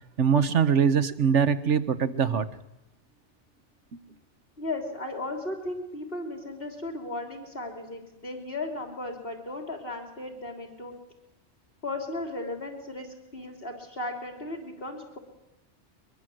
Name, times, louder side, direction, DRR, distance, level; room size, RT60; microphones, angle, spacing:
voice 1, 0.2-2.5, right 7 dB, 90° right, 1.5 m, -22 dB
voice 2, 4.6-10.9 11.8-13.1 13.3-15.2, left 2 dB, 55° left, 3.5 m, -35 dB
23.0 x 22.0 x 7.8 m
omnidirectional pair, 1.2 m